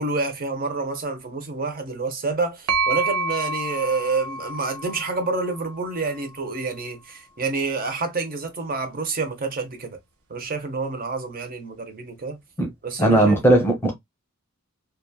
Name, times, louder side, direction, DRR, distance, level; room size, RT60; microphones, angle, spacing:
voice 1, 0.0-10.0 10.3-12.4 12.8-13.4, right 3 dB, 40° right, 0.8 m, -28 dB
sound 1, 2.7-6.4, right 3 dB, 70° right, 0.5 m, -29 dB
voice 2, 13.0-13.9, right 1 dB, 10° left, 0.8 m, -17 dB
3.0 x 2.3 x 2.2 m
head